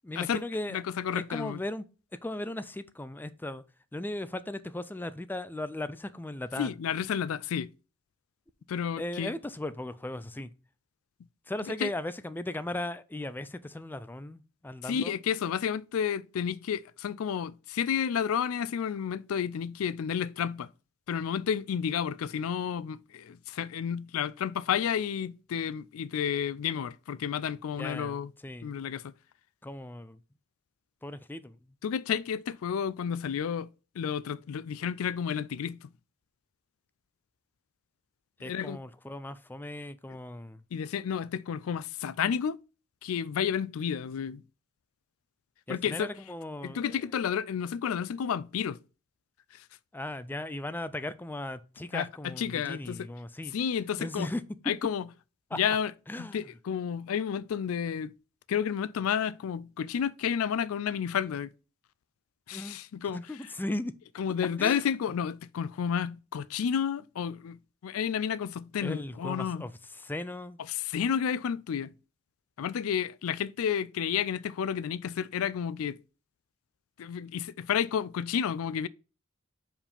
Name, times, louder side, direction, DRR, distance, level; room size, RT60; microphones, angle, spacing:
voice 1, 0.0-0.8 1.1-1.8 2.2-3.6 3.9-6.7 9.0-10.5 11.5-15.1 27.8-28.8 29.6-30.2 31.0-31.6 38.4-40.6 45.7-47.0 49.9-53.5 54.0-54.6 55.5-55.6 56.1-56.5 62.5-62.8 63.1-63.9 64.6-64.9 68.8-70.6, left 1 dB, 10° left, 0.4 m, -37 dB
voice 2, 0.7-1.6 6.6-7.7 8.7-9.3 11.8-11.9 14.9-20.7 21.1-28.3 28.6-29.1 31.8-33.7 34.0-35.9 38.4-38.8 40.7-42.6 43.0-44.4 45.7-46.1 46.6-48.8 49.5-49.6 51.9-53.1 53.5-54.3 54.7-55.0 55.5-55.9 56.2-58.1 58.5-61.5 62.5-63.2 64.2-67.6 67.8-69.6 70.7-71.9 72.6-76.0 77.0-78.9, left 8 dB, 80° left, 0.4 m, -31 dB
5.2 x 4.9 x 5.4 m
head